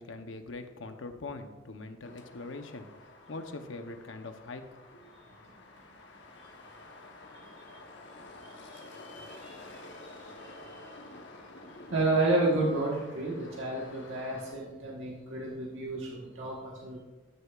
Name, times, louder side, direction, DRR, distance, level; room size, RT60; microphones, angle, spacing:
voice 1, 0.0-4.7 4.9-5.1, left 3 dB, 85° left, 6 dB, 0.8 m, -42 dB
sound 1, 2.0-14.5, left 2 dB, 65° left, 1.1 m, -50 dB
voice 2, 7.3-7.8 8.4-11.0 11.9-17.0, right 2 dB, 90° right, -3 dB, 1.4 m, -32 dB
13.5 x 6.6 x 2.4 m, 1.2 s
head